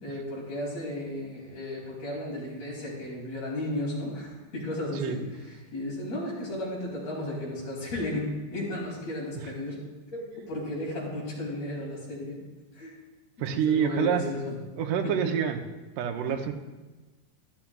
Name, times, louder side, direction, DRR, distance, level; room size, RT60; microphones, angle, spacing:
voice 1, 0.0-5.2 5.4-9.8 10.1-12.4 12.7-12.9 13.5-14.6 15.0-15.1 16.3-16.4, left 1 dB, 45° left, -5 dB, 3.7 m, -34 dB
voice 2, 13.4-14.2 14.8-15.6 16.0-16.5, right 8 dB, 75° right, 6 dB, 2.0 m, -27 dB
11.5 x 11.0 x 2.3 m, 1.2 s
omnidirectional pair, 4.1 m